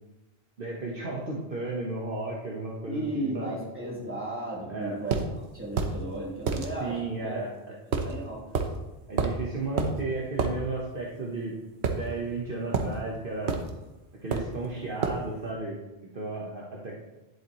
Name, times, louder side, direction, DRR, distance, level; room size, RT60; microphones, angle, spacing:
voice 1, 0.6-3.6 4.7-5.0 6.8-7.8 9.1-11.6 11.9-13.6 14.2-15.8 16.1-16.9, right 2 dB, 55° right, -3 dB, 1.4 m, -34 dB
voice 2, 2.9-5.3 5.5-7.4 8.0-8.6, right 1 dB, 10° right, -7 dB, 3.2 m, -35 dB
sound 1, 5.1-5.3 5.8-6.0 6.5-6.7 7.9-8.1 8.5-8.7 9.2-9.4 9.8-9.9 10.4-10.5 11.8-12.4 12.7-12.9 13.5-13.7 14.3-14.6 15.0-15.2, right 5 dB, 75° right, 1.2 m, -28 dB
10.5 x 7.8 x 3.1 m, 1.0 s
omnidirectional pair, 1.1 m